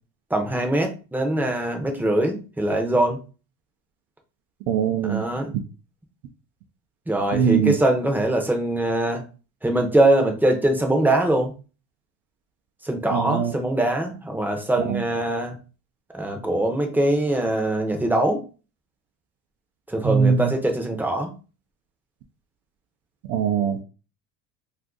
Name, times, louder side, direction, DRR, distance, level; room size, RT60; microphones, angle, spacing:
voice 1, 0.3-3.2 5.0-5.5 7.1-9.2 9.6-11.5 12.8-15.6 16.1-18.4 19.9-21.3, right 1 dB, 5° right, 0.5 m, -22 dB
voice 2, 4.7-5.2 7.3-7.7 13.1-13.5 14.9-15.0 20.0-20.5 23.3-23.8, right 7 dB, 80° right, 0.5 m, -21 dB
2.5 x 2.5 x 3.6 m
cardioid pair, 125°, 33 cm